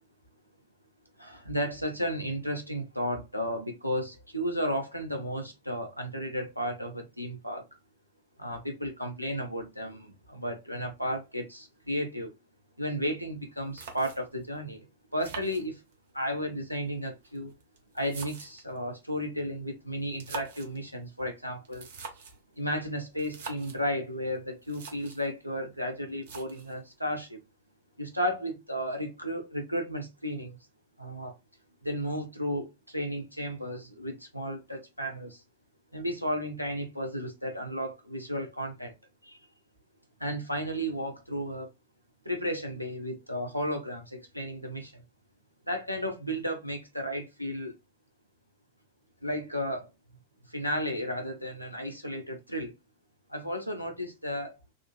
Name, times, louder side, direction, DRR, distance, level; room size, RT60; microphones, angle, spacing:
voice 1, 1.2-7.7 8.4-12.3 12.8-14.8 15.1-15.8 16.1-17.5 17.9-21.9 22.6-27.4 28.0-30.6 31.0-31.3 31.8-35.4 35.9-38.9 39.2-39.4 40.2-41.7 42.2-45.0 45.7-47.7 49.2-49.9 50.5-52.7 53.3-54.6, equal, 90° right, 0.7 m, -33 dB
sound 1, 13.8-14.4 15.2-16.2 17.1-18.8 20.0-20.8 21.6-22.4 23.2-23.8 24.4-24.5 24.6-25.3 26.2-26.8, right 5 dB, 60° right, 0.8 m, -44 dB
3.7 x 2.1 x 2.2 m
figure-of-eight pair, 90°, 0 cm